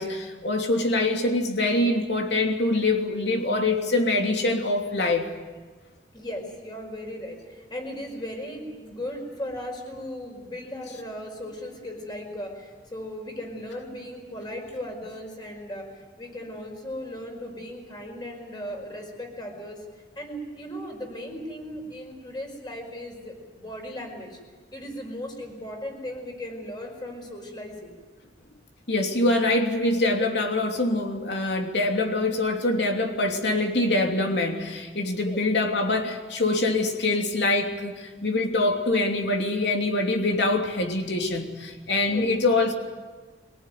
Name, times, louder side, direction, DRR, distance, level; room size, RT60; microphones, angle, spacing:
voice 1, 0.0-5.3 28.9-42.7, left 2 dB, 75° left, 3 dB, 3.0 m, -24 dB
voice 2, 6.1-19.8 20.2-24.4 24.7-27.9 35.2-35.4 42.1-42.3, left 1 dB, 25° left, 2 dB, 5.2 m, -37 dB
24.0 x 18.0 x 9.3 m, 1.3 s
head